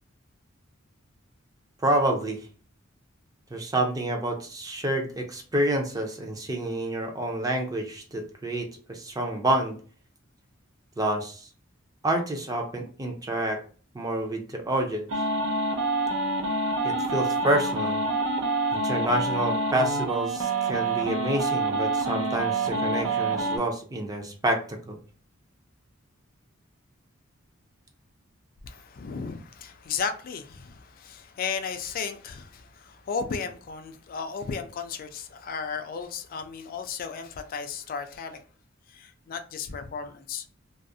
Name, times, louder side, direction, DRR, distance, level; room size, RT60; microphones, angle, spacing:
voice 1, 1.8-2.5 3.5-9.8 11.0-11.5 12.0-13.6 13.9-15.1 16.8-18.0 18.7-25.0, right 1 dB, 20° right, 0.4 m, -28 dB
sound 1, 15.1-23.6, right 2 dB, 85° right, 0.6 m, -27 dB
voice 2, 28.6-38.4 38.9-40.5, left 5 dB, 45° left, 0.3 m, -34 dB
2.4 x 2.0 x 2.6 m
head